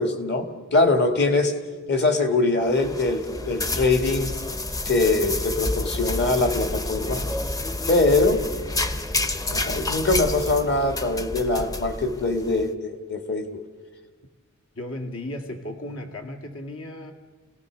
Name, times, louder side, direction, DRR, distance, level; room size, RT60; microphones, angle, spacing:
voice 1, 0.0-1.5 1.9-4.3 4.9-7.2 7.9-8.4 9.5-13.6, left 2 dB, 55° left, 5 dB, 2.3 m, -22 dB
sound 1, 2.6-12.6, left 2 dB, 15° left, 0.7 m, -29 dB
voice 2, 14.8-17.1, left 1 dB, 75° left, 4 dB, 2.4 m, -35 dB
28.0 x 18.0 x 6.6 m, 1.4 s
head